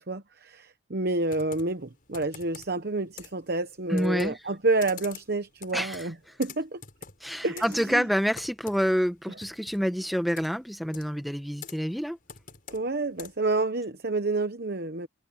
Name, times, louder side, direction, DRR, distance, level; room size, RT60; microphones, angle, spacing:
voice 1, 0.0-6.8 7.4-8.1 12.7-15.1, right 2 dB, 55° right, 1.0 m, -29 dB
Computer keyboard, 1.3-13.6, left 6 dB, 45° left, 6.5 m, -48 dB
voice 2, 3.9-4.4 5.7-6.1 7.2-12.2, equal, ahead, 1.5 m, -27 dB
head